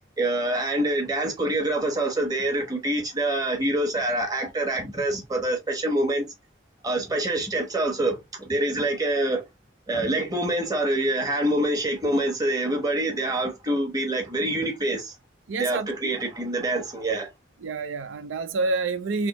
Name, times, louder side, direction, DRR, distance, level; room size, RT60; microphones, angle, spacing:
voice 1, 0.2-6.2 6.8-9.5 9.9-15.1 15.6-17.3, right 1 dB, 20° right, 1.1 m, -26 dB
voice 2, 15.5-16.1 17.6-19.3, right 3 dB, 85° right, 0.5 m, -28 dB
3.4 x 3.0 x 2.9 m
head